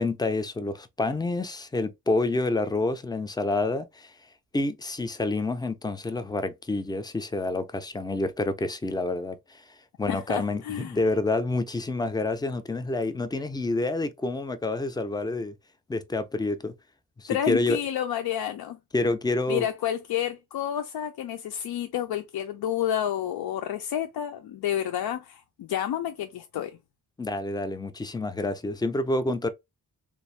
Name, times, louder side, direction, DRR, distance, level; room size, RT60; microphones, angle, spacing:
voice 1, 0.0-4.1 4.5-9.6 10.0-15.5 15.9-16.7 17.2-17.8 18.9-19.7 27.2-29.5, left 2 dB, 10° left, 0.4 m, -28 dB
voice 2, 10.1-11.0 17.3-18.8 19.5-26.8, left 10 dB, 85° left, 0.5 m, -30 dB
3.5 x 2.5 x 3.1 m
wide cardioid pair, 125°, 37 cm